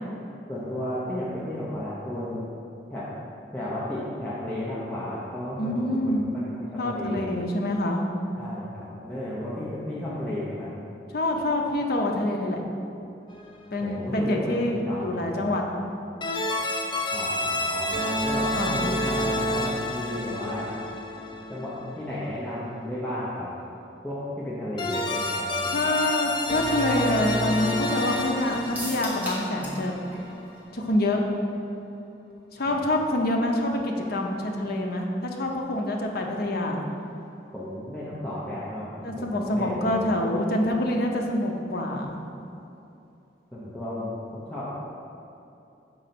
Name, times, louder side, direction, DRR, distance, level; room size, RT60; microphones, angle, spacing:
voice 1, 0.5-2.5 2.9-3.1 3.5-7.3 8.4-10.7 13.8-15.5 17.1-20.7 21.5-23.5 24.0-25.8 32.7-32.8 37.5-40.1 43.5-44.7, left 1 dB, 5° left, -9 dB, 0.9 m, -33 dB
voice 2, 5.6-6.3 6.8-8.0 11.1-12.6 13.7-15.6 18.5-18.8 25.7-30.0 30.7-31.2 32.5-36.8 39.0-42.2, left 1 dB, 60° left, 1 dB, 0.7 m, -26 dB
sound 1, 13.3-13.7 16.2-22.1 24.8-30.7, left 1 dB, 25° left, 0.5 m, -29 dB
sound 2, 28.7-29.9 30.1-30.2 30.6-30.7, right 1 dB, 10° right, 1.4 m, -35 dB
5.4 x 3.9 x 5.9 m, 2.7 s
head